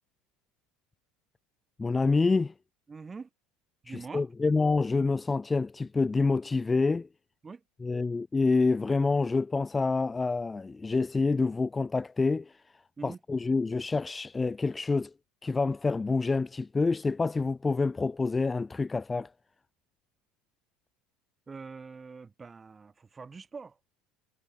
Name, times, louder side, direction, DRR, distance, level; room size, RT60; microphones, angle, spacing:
voice 1, 1.8-2.5 3.9-7.1 7.8-12.5 13.0-15.1 15.4-19.3, left 3 dB, 10° left, 0.3 m, -27 dB
voice 2, 2.9-3.3 3.8-4.3 7.4-7.6 13.0-13.2 21.5-23.8, right 4 dB, 15° right, 2.4 m, -44 dB
cardioid pair, 165°, 0 cm